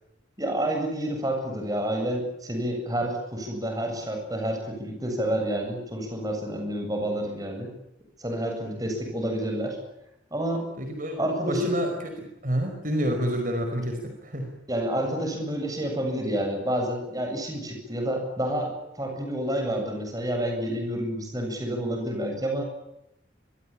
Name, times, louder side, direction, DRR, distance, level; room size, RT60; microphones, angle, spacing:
voice 1, 0.4-7.7 8.2-9.8 10.3-10.7 11.2-11.8 14.7-22.6, right 1 dB, 20° right, 3 dB, 7.8 m, -29 dB
voice 2, 10.8-11.2 11.5-11.9 12.4-14.5, equal, 45° right, 4 dB, 5.1 m, -28 dB
26.0 x 22.0 x 8.7 m, 0.85 s
head